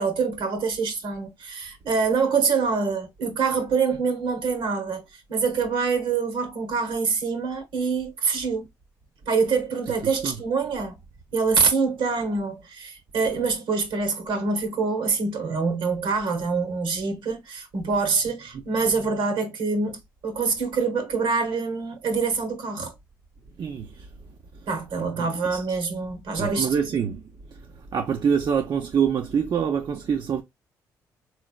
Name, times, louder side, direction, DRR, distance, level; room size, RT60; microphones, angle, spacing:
voice 1, 0.0-8.7 9.3-10.9 11.3-22.9 24.7-26.8, right 4 dB, 70° right, 1.2 m, -25 dB
voice 2, 23.6-24.1 25.2-25.6 26.4-27.2 27.5-27.6 27.9-30.4, right 7 dB, 55° right, 0.6 m, -25 dB
3.7 x 3.2 x 2.3 m
hypercardioid pair, 50°, 9 cm